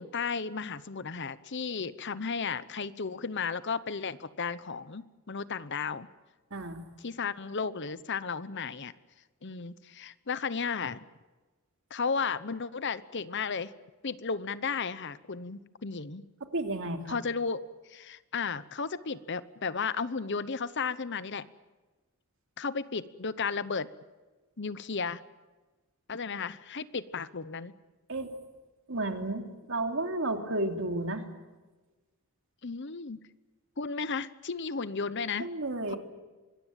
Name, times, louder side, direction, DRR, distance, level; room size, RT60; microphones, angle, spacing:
voice 1, 0.0-6.1 7.0-8.9 9.4-11.0 11.9-13.7 14.0-16.3 17.1-17.6 17.9-21.5 22.6-23.9 24.6-25.2 26.1-27.7 32.6-33.2 33.8-35.5 35.9-36.0, left 5 dB, 50° left, 16 dB, 0.9 m, -34 dB
voice 2, 6.5-6.8 16.5-17.2 28.1-28.3 28.9-31.2 35.4-36.0, right 2 dB, 60° right, 5 dB, 3.0 m, -32 dB
25.5 x 20.5 x 9.0 m, 1.2 s
head